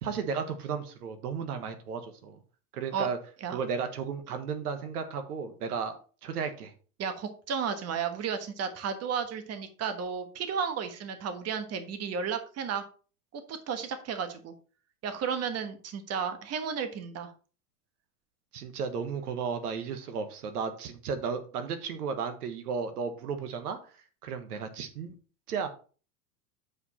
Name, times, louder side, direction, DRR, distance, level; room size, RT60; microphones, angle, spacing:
voice 1, 0.0-2.4 2.7-3.2 3.5-6.7 18.5-23.8 24.2-25.1 25.5-25.7, right 6 dB, 80° right, 8 dB, 1.5 m, -34 dB
voice 2, 7.0-12.8 13.3-14.5 15.0-17.3, right 6 dB, 35° right, 8 dB, 1.4 m, -33 dB
8.1 x 5.0 x 4.2 m, 0.38 s
hypercardioid pair, 100°, 45 cm